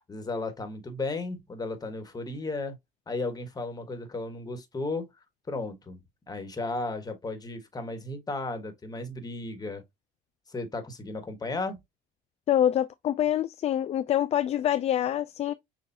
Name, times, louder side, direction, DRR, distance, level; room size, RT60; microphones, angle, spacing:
voice 1, 0.1-2.8 3.1-9.8 10.5-11.8, left 3 dB, 20° left, 1.4 m, -35 dB
voice 2, 12.5-15.5, left 11 dB, 35° left, 0.3 m, -25 dB
6.7 x 2.6 x 2.7 m
supercardioid pair, 95°, 18 cm